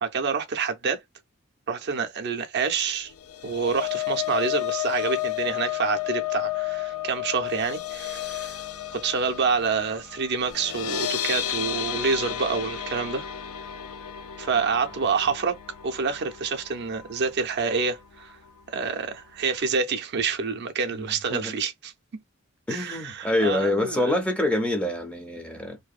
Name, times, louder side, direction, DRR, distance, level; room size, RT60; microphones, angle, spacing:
voice 1, 0.0-1.0 1.7-3.1 3.4-8.6 8.9-13.3 14.4-15.6 15.8-18.3 18.7-21.9 22.7-24.2, right 5 dB, 50° right, 0.5 m, -27 dB
sound 1, 3.1-17.3 17.7-17.9 18.2-18.3, left 12 dB, 85° left, 0.4 m, -32 dB
voice 2, 20.9-21.5 22.7-25.8, left 1 dB, 5° left, 0.5 m, -26 dB
2.7 x 2.1 x 2.4 m
head